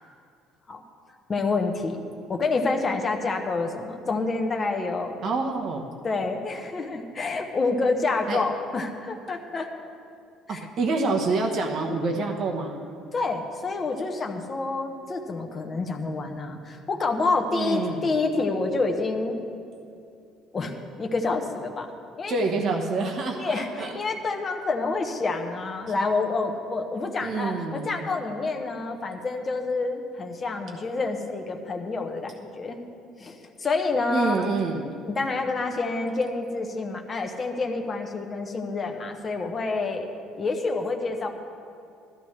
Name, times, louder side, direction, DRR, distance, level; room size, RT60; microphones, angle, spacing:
voice 1, 1.3-2.0 2.3-5.1 6.0-9.7 10.5-10.6 13.1-19.4 20.5-21.9 22.2-22.3 23.4-32.8 33.2-34.5 35.0-40.1 40.4-41.3, left 3 dB, 25° left, 3 dB, 0.9 m, -28 dB
voice 2, 5.2-5.9 8.3-8.4 10.5-12.8 17.5-18.2 22.3-23.9 27.2-28.0 34.1-34.8, right 3 dB, 40° right, 1 dB, 1.0 m, -27 dB
15.5 x 13.5 x 3.2 m, 2.5 s
cardioid pair, 165°, 0 cm